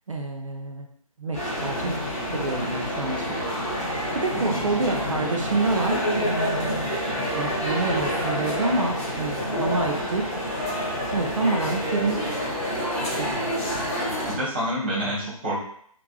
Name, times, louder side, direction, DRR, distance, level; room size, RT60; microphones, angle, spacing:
voice 1, 0.1-0.9 1.2-3.4 3.7-3.9 4.1-6.9 7.2-10.3 11.1-12.4 13.2-13.4, right 3 dB, 60° right, 2 dB, 0.5 m, -28 dB
sound 1, 1.3-14.3, equal, 25° left, 1.0 m, -28 dB
voice 2, 14.3-15.6, equal, 15° right, -8 dB, 0.6 m, -28 dB
3.2 x 2.4 x 2.2 m, 0.63 s
figure-of-eight pair, 150°, 19 cm